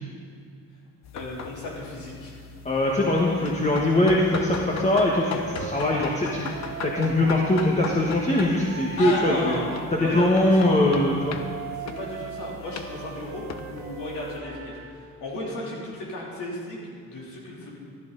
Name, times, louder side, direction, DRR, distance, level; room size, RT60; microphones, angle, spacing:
sound 1, 1.0-14.4, left 5 dB, 60° left, 0.9 m, -39 dB
voice 1, 1.1-2.4 9.0-9.7 10.0-10.5 11.8-17.8, left 2 dB, 85° left, -4 dB, 3.4 m, -34 dB
voice 2, 2.6-9.5 9.9-11.4, left 1 dB, 25° left, -3 dB, 1.4 m, -22 dB
Wind instrument woodwind instrument, 3.1-8.9 9.4-15.0, right 6 dB, 70° right, 1.4 m, -41 dB
15.0 x 12.5 x 4.0 m, 2.3 s
cardioid pair, 90°, 30 cm